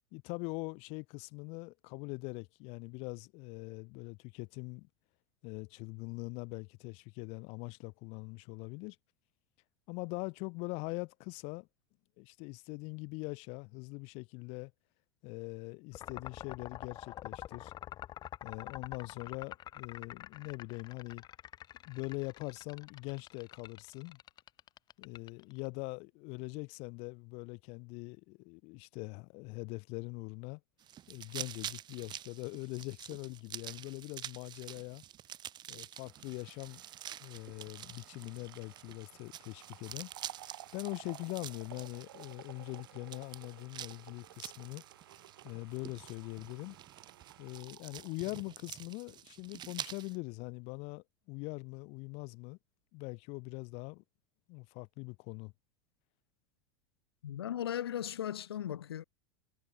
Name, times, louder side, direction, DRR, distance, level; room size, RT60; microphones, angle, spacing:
voice 1, 0.1-4.9 5.4-9.0 9.9-11.7 12.2-14.7 15.2-17.7 18.4-21.2 21.8-24.2 25.0-30.6 31.1-35.0 35.7-36.8 37.2-40.1 40.7-44.8 45.4-46.8 47.4-52.6 52.9-54.0 54.5-55.5, left 29 dB, 50° left, 4.6 m, -42 dB
sound 1, 15.9-25.7, left 12 dB, 30° left, 0.9 m, -47 dB
sound 2, 30.8-50.2, right 11 dB, 35° right, 2.6 m, -48 dB
sound 3, 36.0-49.2 49.6-49.7, right 13 dB, 65° right, 3.6 m, -55 dB
voice 2, 57.2-59.0, left 10 dB, 70° left, 0.5 m, -37 dB
figure-of-eight pair, 85°, 13 cm